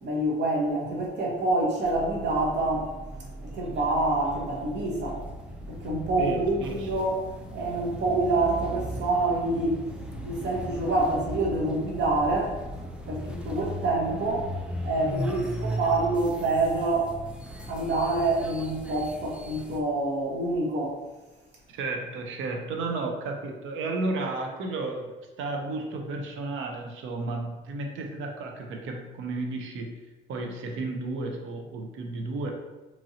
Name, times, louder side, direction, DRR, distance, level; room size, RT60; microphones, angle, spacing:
voice 1, 0.0-2.9 3.5-5.2 5.7-7.3 7.5-9.8 10.2-12.6 13.1-14.5 14.8-17.2 17.7-21.0, right 2 dB, 60° right, -3 dB, 0.9 m, -26 dB
sound 1, 1.8-19.8, equal, 5° right, 0.4 m, -37 dB
voice 2, 6.2-6.9 21.7-30.0 30.3-32.5, right 2 dB, 75° right, 3 dB, 0.5 m, -33 dB
2.9 x 2.5 x 2.7 m, 1.2 s
cardioid pair, 90°, 20 cm